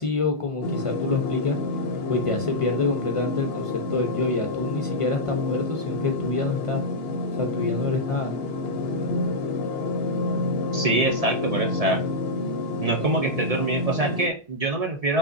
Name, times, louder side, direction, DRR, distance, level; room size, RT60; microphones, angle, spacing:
voice 1, 0.0-1.6 2.1-6.8 7.4-8.4, left 3 dB, 40° left, 4 dB, 0.6 m, -27 dB
sound 1, 0.6-14.3, left 3 dB, 75° left, 0.8 m, -29 dB
voice 2, 10.7-12.0 12.8-15.2, right 2 dB, 45° right, 2 dB, 0.6 m, -24 dB
5.2 x 3.5 x 2.6 m, 0.35 s
omnidirectional pair, 1.0 m